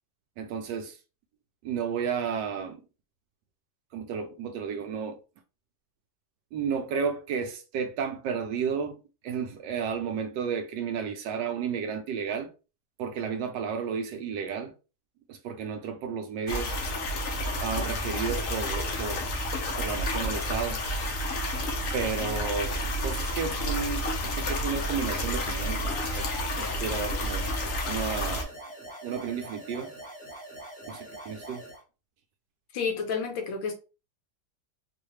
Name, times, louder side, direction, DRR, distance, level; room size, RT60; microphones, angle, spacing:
voice 1, 0.4-1.0 1.6-2.8 3.9-5.2 6.5-9.0 9.2-12.5 13.0-14.7 15.3-16.8 17.6-19.3 19.8-20.8 21.6-26.3 26.5-27.5 27.9-28.5 29.0-29.9 30.9-31.6, right 6 dB, 75° right, 1.1 m, -32 dB
sound 1, 16.5-28.4, left 1 dB, 55° left, 1.0 m, -30 dB
sound 2, 24.7-31.8, right 1 dB, 5° left, 0.7 m, -44 dB
voice 2, 32.7-33.7, left 5 dB, 75° left, 1.5 m, -30 dB
3.9 x 2.5 x 3.1 m
omnidirectional pair, 2.1 m